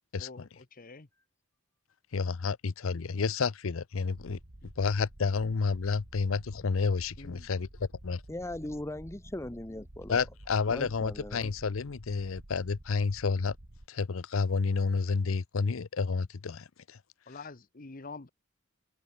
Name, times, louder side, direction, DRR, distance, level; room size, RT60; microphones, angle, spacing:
voice 1, 0.2-1.1 7.2-7.5 17.3-18.3, left 3 dB, 45° left, 1.1 m, -46 dB
voice 2, 2.1-4.4 4.8-8.2 10.1-13.6 13.9-17.0, left 4 dB, 75° left, 0.6 m, -30 dB
sound 1, 4.1-13.9, right 1 dB, 55° right, 2.2 m, -51 dB
voice 3, 8.3-10.2 10.7-11.5, left 1 dB, 15° left, 0.8 m, -39 dB
open air
head